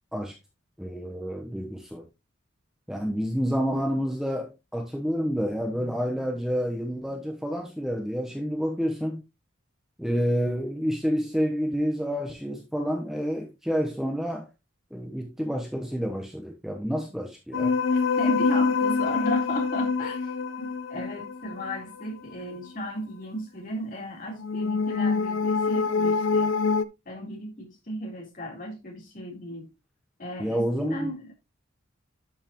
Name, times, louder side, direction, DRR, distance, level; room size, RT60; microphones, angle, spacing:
voice 1, 0.8-2.0 2.9-9.2 10.0-14.5 14.9-17.8 30.4-31.1, equal, ahead, 0.9 m, -29 dB
sound 1, 17.5-22.0 24.4-26.8, left 4 dB, 70° left, 0.7 m, -25 dB
voice 2, 18.2-26.5 27.1-29.7 30.2-31.3, equal, 40° left, 3.6 m, -35 dB
11.5 x 5.8 x 3.0 m
head